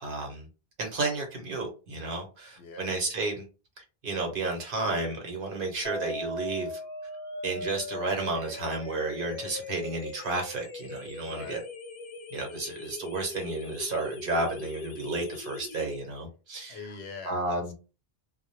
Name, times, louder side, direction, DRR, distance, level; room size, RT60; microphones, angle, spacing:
voice 1, 0.0-0.5 0.8-3.4 3.8-6.8 7.4-11.6 12.3-16.9 17.2-17.7, right 2 dB, 60° right, 1.0 m, -32 dB
voice 2, 2.6-2.9 11.2-11.6 16.7-17.7, left 4 dB, 85° left, 0.9 m, -42 dB
sound 1, 5.8-15.8, left 2 dB, 55° left, 0.6 m, -40 dB
2.2 x 2.0 x 3.0 m
omnidirectional pair, 1.0 m